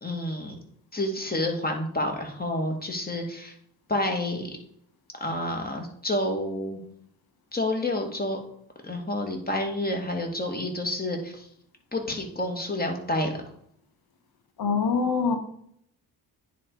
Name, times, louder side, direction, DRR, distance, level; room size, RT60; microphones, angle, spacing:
voice 1, 0.0-0.5 0.9-3.5 3.9-4.5 5.2-6.8 7.5-8.4 8.8-11.5 11.9-13.4, left 1 dB, 20° left, 2 dB, 2.3 m, -29 dB
voice 2, 14.6-15.4, left 5 dB, 60° left, 6 dB, 1.4 m, -24 dB
9.6 x 4.1 x 4.9 m, 0.67 s
cardioid pair, 60°, 42 cm